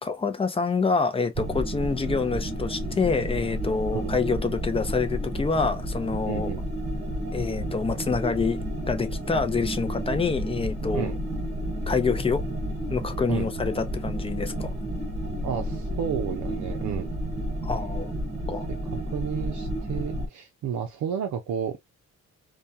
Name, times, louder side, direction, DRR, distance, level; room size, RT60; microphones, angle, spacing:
voice 1, 0.0-6.5 7.3-11.1 11.9-12.4 12.9-14.7 17.6-18.1 18.5-18.7, left 4 dB, 20° left, 0.5 m, -27 dB
sound 1, 1.4-20.3, right 1 dB, 20° right, 1.2 m, -31 dB
voice 2, 6.3-6.6 10.9-11.2 13.3-13.5 15.4-17.1 18.7-21.8, right 8 dB, 70° right, 0.6 m, -31 dB
2.3 x 2.2 x 2.6 m
cardioid pair, 90°, 30 cm